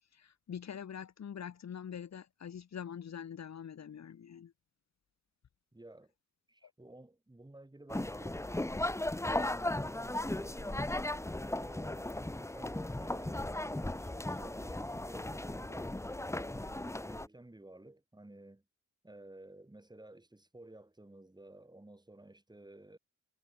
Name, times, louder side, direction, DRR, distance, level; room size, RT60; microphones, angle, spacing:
voice 1, 0.1-4.5 6.6-6.7, left 8 dB, 60° left, 1.3 m, -44 dB
voice 2, 5.7-6.1 6.5-8.8 9.2-16.0 16.3-18.6 19.0-23.0, right 1 dB, 15° right, 7.1 m, -54 dB
sound 1, 7.9-17.3, left 1 dB, 10° left, 1.3 m, -36 dB
wide cardioid pair, 115°, 30 cm